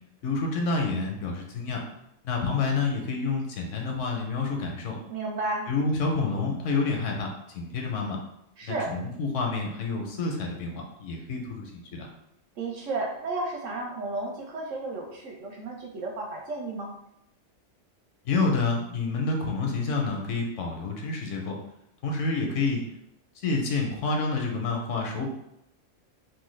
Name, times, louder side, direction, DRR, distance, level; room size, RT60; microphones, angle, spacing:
voice 1, 0.2-1.8 2.2-5.0 5.7-8.2 8.6-12.1 18.2-21.6 22.0-22.8 23.4-25.3, left 3 dB, 80° left, 1 dB, 1.0 m, -28 dB
voice 2, 5.1-5.7 8.6-8.9 12.6-16.9, right 2 dB, 80° right, 0 dB, 1.0 m, -33 dB
3.2 x 2.2 x 3.1 m, 0.80 s
omnidirectional pair, 1.3 m